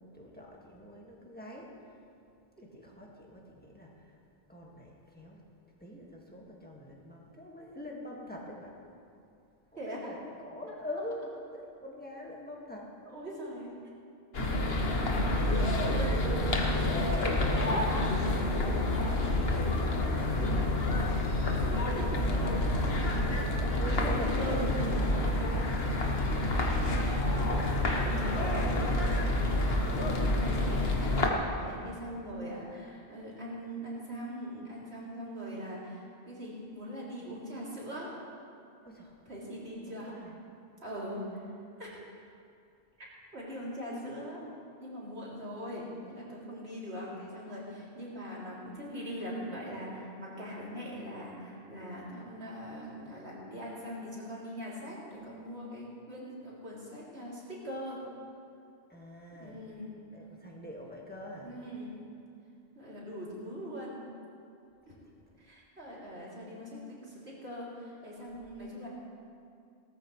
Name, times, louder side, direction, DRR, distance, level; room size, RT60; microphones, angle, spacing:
voice 1, 0.0-1.7 2.6-4.2 4.5-5.4 5.8-8.7 9.7-11.2 11.5-12.9 20.1-20.9 22.0-25.1 32.1-32.2 38.8-39.2 39.8-40.3 58.9-59.6 60.1-61.6, left 1 dB, 10° left, -3 dB, 1.8 m, -44 dB
voice 2, 9.8-10.1 13.1-13.7 15.9-16.6 16.9-18.3 20.4-21.1 22.9-23.4 24.4-24.8 27.0-29.1 29.9-38.2 39.3-40.1 40.8-41.5 41.8-41.9 43.3-44.4 44.8-58.0 59.4-60.0 61.4-62.0 62.8-64.0 64.9-65.0 65.4-68.9, equal, 75° right, -6 dB, 3.4 m, -41 dB
sound 1, 14.3-31.3, left 1 dB, 65° left, 1.4 m, -28 dB
18.0 x 14.0 x 3.2 m, 2.5 s
omnidirectional pair, 1.1 m